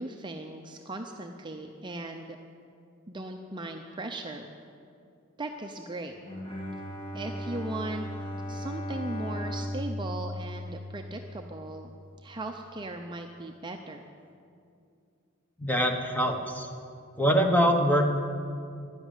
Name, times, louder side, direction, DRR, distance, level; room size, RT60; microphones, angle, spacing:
voice 1, 0.0-2.4 3.1-4.5 5.4-6.1 7.1-8.0 8.5-11.9 12.2-14.1, right 2 dB, 20° right, 4 dB, 0.6 m, -38 dB
Bowed string instrument, 6.2-11.5, equal, 25° left, 1.9 m, -36 dB
voice 2, 15.6-16.7 17.2-18.1, equal, 10° left, 3 dB, 1.2 m, -24 dB
12.0 x 10.5 x 9.1 m, 2.4 s
head